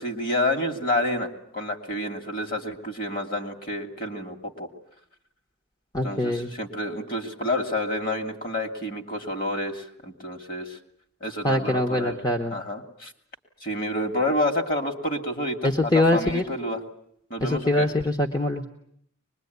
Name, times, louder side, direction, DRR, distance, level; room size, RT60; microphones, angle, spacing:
voice 1, 0.0-4.7 6.0-10.8 11.2-12.2 12.5-13.1 13.6-16.8 17.3-17.9, left 1 dB, 40° left, 5 dB, 2.8 m, -29 dB
voice 2, 5.9-6.5 11.4-12.5 15.6-16.4 17.4-18.7, left 1 dB, 20° left, 2 dB, 1.1 m, -23 dB
24.0 x 21.5 x 9.5 m, 0.71 s
head